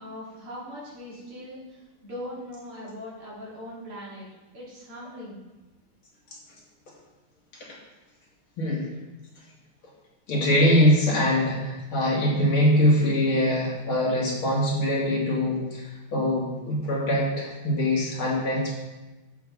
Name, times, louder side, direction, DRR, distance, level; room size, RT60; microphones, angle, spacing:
voice 1, 0.0-4.3 4.5-5.4, equal, 80° right, -7 dB, 3.9 m, -40 dB
voice 2, 8.6-8.9 10.3-18.8, left 1 dB, 65° left, -5 dB, 3.1 m, -23 dB
9.6 x 7.7 x 4.0 m, 1.1 s
omnidirectional pair, 2.4 m